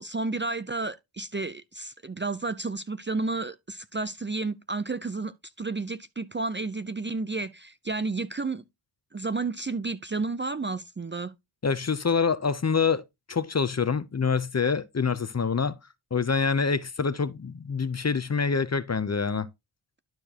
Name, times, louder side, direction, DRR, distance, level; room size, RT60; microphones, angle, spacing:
voice 1, 0.0-8.6 9.1-11.3, right 3 dB, 25° right, 0.5 m, -31 dB
voice 2, 11.6-13.0 13.3-15.8 16.1-19.5, left 5 dB, 30° left, 0.7 m, -26 dB
12.0 x 4.5 x 2.9 m
cardioid pair, 55°, 50 cm